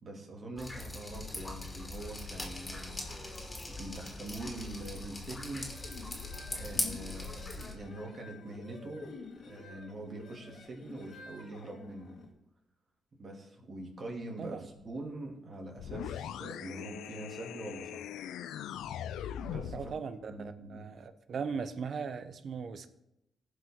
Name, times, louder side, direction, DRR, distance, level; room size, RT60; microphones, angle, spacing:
voice 1, 0.0-2.9 3.7-5.7 6.5-7.4 7.7-9.1 9.4-12.2 13.1-18.1 19.4-19.9 20.3-20.9, right 2 dB, 45° right, 0 dB, 2.7 m, -43 dB
Drip, 0.6-7.7, left 2 dB, 25° left, 2.8 m, -40 dB
sound 1, 5.5-12.3, left 4 dB, 70° left, 2.1 m, -50 dB
sound 2, 15.8-20.0, left 10 dB, 85° left, 0.4 m, -40 dB
voice 2, 19.7-22.9, right 5 dB, 60° right, 12 dB, 0.8 m, -38 dB
16.0 x 5.4 x 3.8 m, 0.86 s
cardioid pair, 70°, 0 cm